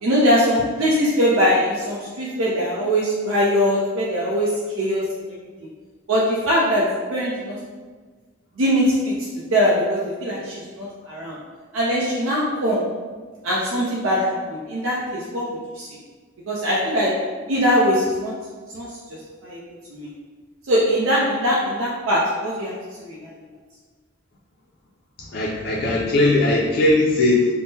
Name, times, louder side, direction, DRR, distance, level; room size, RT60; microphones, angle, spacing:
voice 1, 0.0-5.4 6.1-7.6 8.6-9.1 9.5-11.4 11.7-12.8 13.4-15.9 16.5-17.1 17.5-18.3 18.7-18.9 19.4-19.6 19.9-20.1 20.7-22.7 23.0-23.3, equal, 80° right, -5 dB, 0.5 m, -21 dB
voice 2, 25.3-27.5, left 2 dB, 50° left, -5 dB, 0.3 m, -19 dB
3.5 x 2.0 x 2.7 m, 1.4 s
head